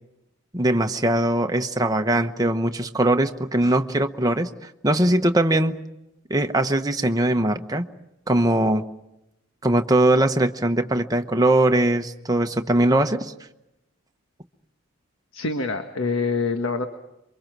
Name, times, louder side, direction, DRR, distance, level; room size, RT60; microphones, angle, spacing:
voice 1, 0.5-5.8 6.3-7.8 8.3-8.8 9.6-13.3, right 1 dB, 20° right, 5 dB, 1.0 m, -21 dB
voice 2, 15.3-16.9, left 4 dB, 75° left, 6 dB, 1.5 m, -25 dB
27.5 x 24.0 x 6.1 m, 0.91 s
head